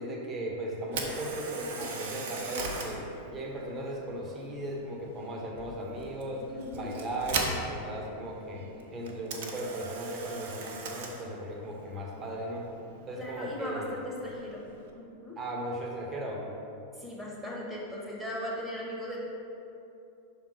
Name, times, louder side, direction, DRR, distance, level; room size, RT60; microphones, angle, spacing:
voice 1, 0.0-6.5 6.7-12.7 13.1-14.0 15.4-16.5, right 1 dB, 25° right, -1 dB, 1.0 m, -37 dB
Camera, 0.8-14.9, right 3 dB, 50° right, 0.7 m, -40 dB
voice 2, 6.5-6.9 13.2-14.6 14.9-15.3 17.0-19.2, left 1 dB, ahead, -4 dB, 1.4 m, -38 dB
5.9 x 3.7 x 4.7 m, 2.7 s
figure-of-eight pair, 90°, 0 cm